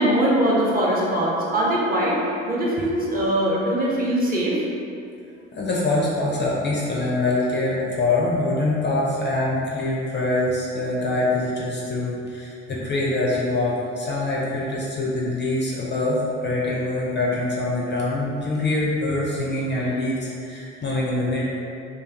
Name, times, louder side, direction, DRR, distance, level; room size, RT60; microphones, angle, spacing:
voice 1, 0.0-2.2 2.4-4.6, right 1 dB, 25° right, -6 dB, 0.7 m, -21 dB
voice 2, 5.5-21.4, left 2 dB, 30° left, -5 dB, 0.5 m, -24 dB
2.6 x 2.3 x 2.5 m, 2.5 s
figure-of-eight pair, 50°, 34 cm